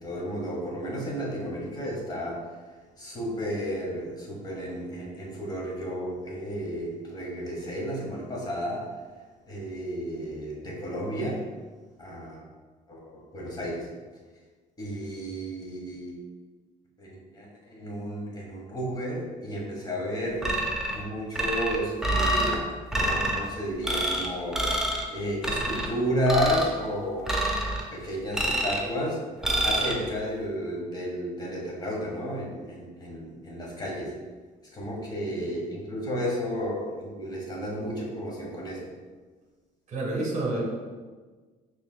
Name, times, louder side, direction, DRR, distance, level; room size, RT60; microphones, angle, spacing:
voice 1, 0.0-2.4 3.0-8.9 9.5-11.5 12.0-12.4 12.9-13.9 14.8-16.2 17.0-20.5 20.9-22.6 22.9-27.3 27.9-29.2 29.6-34.1 34.7-38.9, equal, 25° left, -3 dB, 1.2 m, -32 dB
sound 1, 20.4-21.0 21.4-22.6 22.9-23.4 23.8-24.3 24.5-25.1 25.4-25.9 26.3-26.7 27.3-27.8 28.3-28.9 29.4-29.9, right 1 dB, 5° right, 0.6 m, -27 dB
voice 2, 39.9-40.6, right 2 dB, 45° right, -1 dB, 1.2 m, -29 dB
5.6 x 3.1 x 2.2 m, 1.4 s
cardioid pair, 110°, 17 cm